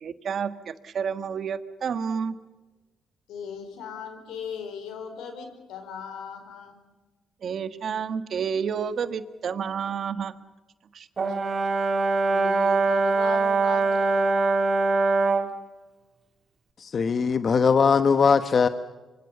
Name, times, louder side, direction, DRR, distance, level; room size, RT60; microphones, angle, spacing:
voice 1, 0.0-2.3 7.4-10.3 10.9-11.1, right 6 dB, 55° right, 12 dB, 1.5 m, -30 dB
voice 2, 3.3-6.7 11.2-11.3 12.3-14.4, left 6 dB, 85° left, 7 dB, 4.7 m, -38 dB
Brass instrument, 11.2-15.5, right 3 dB, 40° right, 2.4 m, -23 dB
voice 3, 16.8-18.7, left 5 dB, 45° left, 11 dB, 1.1 m, -20 dB
25.5 x 24.5 x 6.9 m, 1.2 s
cardioid pair, 90°, 0 cm